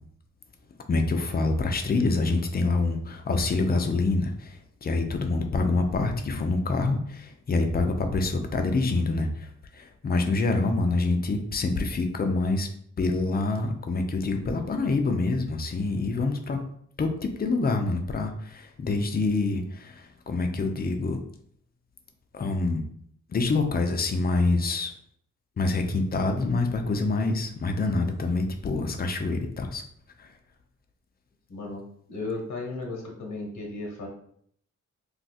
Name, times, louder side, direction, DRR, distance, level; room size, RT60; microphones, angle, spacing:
voice 1, 0.9-12.7 13.0-16.6 17.0-21.2 22.3-22.8 23.3-24.9 25.6-29.8 30.2-30.3, left 3 dB, 30° left, 5 dB, 0.5 m, -26 dB
voice 2, 31.5-31.8 32.1-34.1, left 3 dB, 75° left, -1 dB, 0.9 m, -35 dB
2.6 x 2.4 x 4.0 m, 0.65 s
wide cardioid pair, 100°, 30 cm